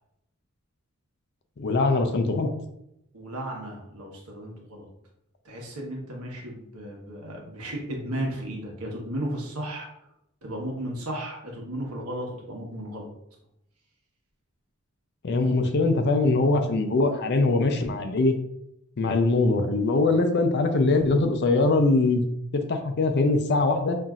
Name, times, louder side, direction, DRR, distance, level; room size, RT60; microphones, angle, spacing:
voice 1, 1.6-2.5 15.2-18.4 19.0-22.2 22.5-24.0, left 3 dB, 50° left, 6 dB, 0.5 m, -22 dB
voice 2, 3.1-4.9 5.4-9.9 10.4-13.1, right 1 dB, 85° right, 0 dB, 1.1 m, -34 dB
5.6 x 2.6 x 2.4 m, 0.80 s
head